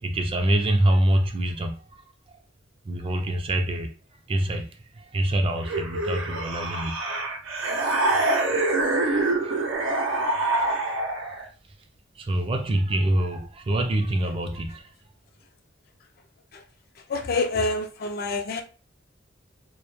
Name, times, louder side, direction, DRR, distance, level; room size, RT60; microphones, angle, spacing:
voice 1, 0.0-2.0 2.8-3.9 4.3-7.0 8.0-8.2 8.8-10.9 12.2-14.9, right 1 dB, 30° right, 0.3 m, -26 dB
sound 1, 5.6-11.5, right 2 dB, 85° right, 0.5 m, -25 dB
voice 2, 17.1-18.6, left 3 dB, 50° left, 0.4 m, -26 dB
2.1 x 2.1 x 2.9 m
head